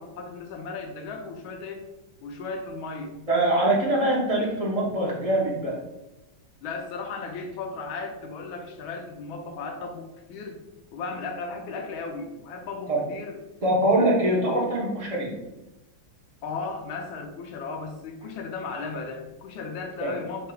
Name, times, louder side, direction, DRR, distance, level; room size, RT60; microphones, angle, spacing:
voice 1, 0.0-1.9 2.2-3.2 3.6-3.9 6.6-10.6 10.9-13.4 16.4-20.5, left 4 dB, 85° left, 3 dB, 1.4 m, -35 dB
voice 2, 3.3-5.7 12.9-13.0 13.6-15.3 20.0-20.1, right 1 dB, 40° right, -4 dB, 0.5 m, -23 dB
6.5 x 3.2 x 2.3 m, 0.98 s
omnidirectional pair, 2.2 m